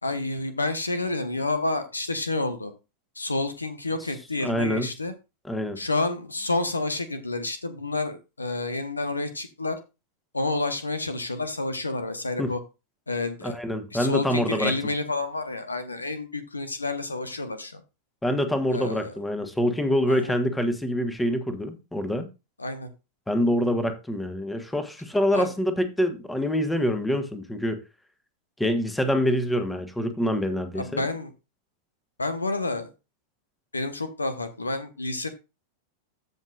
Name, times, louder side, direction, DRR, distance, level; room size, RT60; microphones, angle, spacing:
voice 1, 0.0-2.7 3.1-5.1 5.8-9.8 10.3-12.6 13.1-13.6 13.9-17.8 18.7-19.1 20.1-20.4 22.6-22.9 25.3-25.5 30.7-31.3 32.2-32.9 33.7-35.3, left 2 dB, 80° left, 1.1 m, -29 dB
voice 2, 4.4-4.9 5.5-5.8 12.4-12.5 13.4-14.7 18.2-22.3 23.3-27.8 28.6-31.0, equal, 5° left, 1.4 m, -25 dB
15.0 x 5.4 x 2.5 m
figure-of-eight pair, 90°, 0 cm